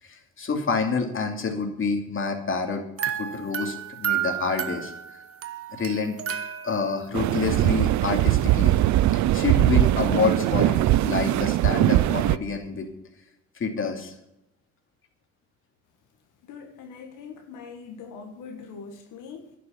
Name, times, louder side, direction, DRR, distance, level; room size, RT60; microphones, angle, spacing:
voice 1, 0.0-2.8 3.2-4.9 5.7-6.2 6.6-8.7 9.1-12.9 13.5-14.1, left 4 dB, 45° left, 2.7 m, -28 dB
sound 1, 3.0-7.1, right 9 dB, 50° right, 1.1 m, -31 dB
sound 2, 7.1-12.4, right 15 dB, 70° right, 0.5 m, -21 dB
voice 2, 16.4-19.5, left 5 dB, 90° left, 1.8 m, -42 dB
11.5 x 6.8 x 9.5 m
cardioid pair, 90°, 30 cm